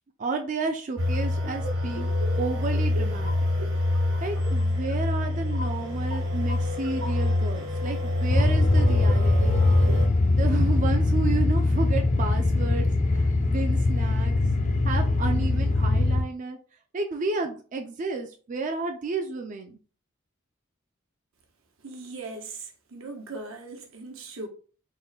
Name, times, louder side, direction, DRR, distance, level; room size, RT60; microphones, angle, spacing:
voice 1, 0.2-2.1 2.4-3.5 4.2-9.6 10.3-14.3 14.8-16.6 16.9-19.8, right 3 dB, 40° right, 0.4 m, -32 dB
sound 1, 1.0-10.1, left 2 dB, 65° right, 1.2 m, -26 dB
sound 2, 8.3-16.2, left 2 dB, 35° left, 0.4 m, -22 dB
voice 2, 21.8-24.5, right 3 dB, 85° right, 1.0 m, -39 dB
3.7 x 2.2 x 4.0 m
head